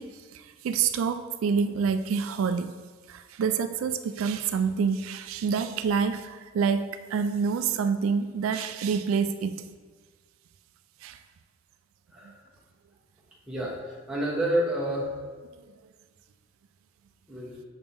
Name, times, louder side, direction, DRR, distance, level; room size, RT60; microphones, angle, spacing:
voice 1, 0.0-2.7 3.1-9.7 11.0-11.2 12.2-12.3, right 6 dB, 85° right, 10 dB, 0.3 m, -27 dB
voice 2, 13.5-15.1 17.3-17.5, right 1 dB, 5° right, -6 dB, 1.1 m, -29 dB
6.7 x 3.6 x 4.3 m, 1.4 s
head